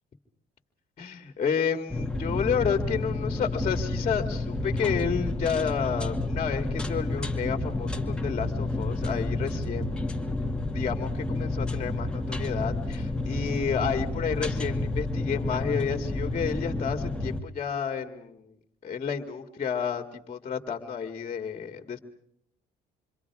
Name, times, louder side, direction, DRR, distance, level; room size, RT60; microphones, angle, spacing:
voice 1, 1.0-10.1 10.7-18.5 18.8-22.0, left 6 dB, 35° left, 5 dB, 2.2 m, -31 dB
sound 1, 1.9-17.4, left 2 dB, 5° left, 2.0 m, -30 dB
27.5 x 25.5 x 4.8 m, 0.69 s
cardioid pair, 110°, 17 cm